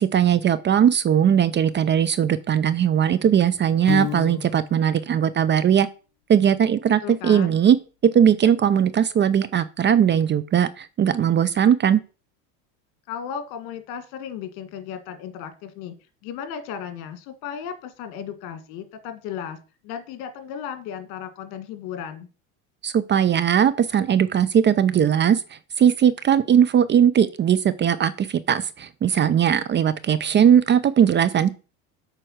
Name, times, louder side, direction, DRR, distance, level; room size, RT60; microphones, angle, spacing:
voice 1, 0.0-5.9 6.3-7.8 8.0-12.0 22.8-25.4 25.8-31.5, right 9 dB, 30° right, 15 dB, 0.5 m, -19 dB
Piano, 3.9-4.9, left 13 dB, 85° left, 0.8 m, -29 dB
voice 2, 7.0-7.6 13.1-15.9 16.2-19.6 19.8-22.3, left 8 dB, 65° left, 9 dB, 1.8 m, -35 dB
7.8 x 4.5 x 6.4 m, 0.34 s
supercardioid pair, 105°, 40 cm